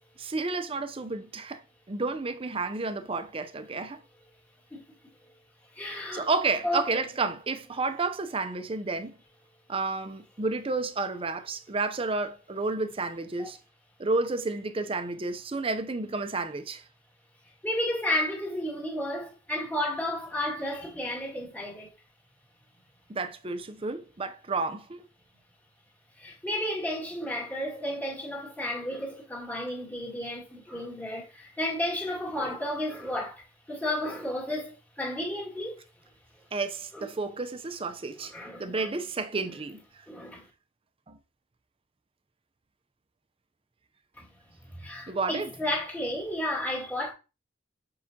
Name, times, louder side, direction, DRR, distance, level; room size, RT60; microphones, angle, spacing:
voice 1, 0.2-1.6 1.9-4.0 5.9-9.2 9.7-13.6 14.0-16.8 23.1-25.1 36.5-38.3 38.6-40.0 41.1-41.2 45.1-45.5, right 3 dB, 30° right, 0.6 m, -31 dB
voice 2, 5.7-6.3 6.6-6.8 13.4-13.5 17.6-21.9 26.2-35.8 36.9-37.1 38.3-38.9 40.1-40.4 44.2-44.3 44.7-47.1, left 1 dB, 10° left, 2.1 m, -32 dB
7.3 x 4.8 x 2.8 m
head